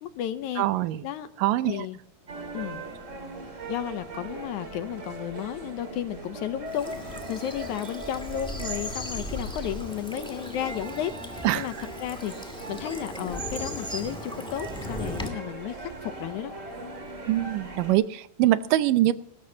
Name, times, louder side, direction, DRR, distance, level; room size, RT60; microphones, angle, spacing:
voice 1, 0.0-0.7 1.0-1.3 1.7-2.0 2.5-2.9 3.7-11.7 12.0-16.5, left 11 dB, 75° left, 11 dB, 2.0 m, -33 dB
voice 2, 0.6-1.0 1.4-1.9 11.4-11.7 17.3-19.1, right 14 dB, 80° right, 13 dB, 2.3 m, -23 dB
sound 1, 2.3-17.9, right 2 dB, 25° right, 2.1 m, -40 dB
Bird vocalization bird call bird song / Stream, 6.7-15.3, equal, ahead, 1.6 m, -37 dB
20.0 x 18.0 x 2.8 m, 0.64 s
omnidirectional pair, 3.9 m